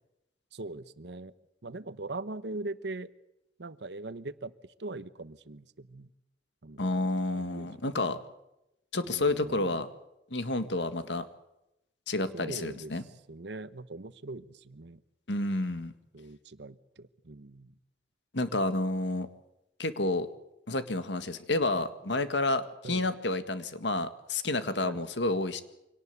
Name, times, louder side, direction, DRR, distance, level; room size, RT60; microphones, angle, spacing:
voice 1, 0.5-1.3 1.6-3.1 3.6-4.5 4.8-6.1 6.6-6.9 7.3-8.2 9.0-9.9 12.3-12.9 13.3-15.0 16.1-17.8 22.8-23.1 24.8-25.0, right 2 dB, 70° right, 15 dB, 1.0 m, -41 dB
voice 2, 6.8-8.2 8.9-9.9 10.3-11.3 12.1-13.0 15.3-15.9 18.3-19.3 19.8-20.3 20.7-25.6, left 2 dB, 75° left, 11 dB, 1.8 m, -30 dB
25.0 x 18.5 x 8.1 m, 0.88 s
head